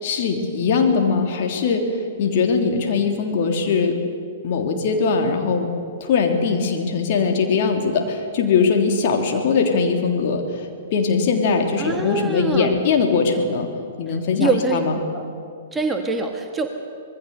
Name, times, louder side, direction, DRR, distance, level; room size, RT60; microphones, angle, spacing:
voice 1, 0.0-1.8 2.2-4.0 4.4-5.7 6.0-13.7 14.0-14.9, left 5 dB, 45° left, 2 dB, 3.2 m, -21 dB
voice 2, 11.8-12.8 14.4-14.8 15.1-15.2 15.7-16.7, right 3 dB, 10° right, 4 dB, 1.7 m, -24 dB
25.5 x 20.5 x 6.8 m, 2.3 s
figure-of-eight pair, 110°, 0 cm